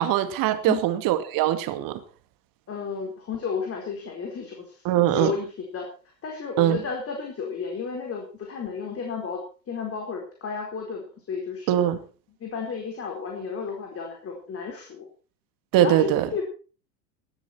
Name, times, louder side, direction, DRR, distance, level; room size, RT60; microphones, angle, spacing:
voice 1, 0.0-2.0 4.8-5.3 6.6-6.8 11.7-12.0 15.7-16.3, right 12 dB, 40° right, 2.3 m, -22 dB
voice 2, 2.7-5.9 6.2-9.4 9.7-11.9 12.4-15.1 15.7-16.4, left 5 dB, 25° left, 4.5 m, -33 dB
18.0 x 12.5 x 4.4 m
figure-of-eight pair, 90°, 50 cm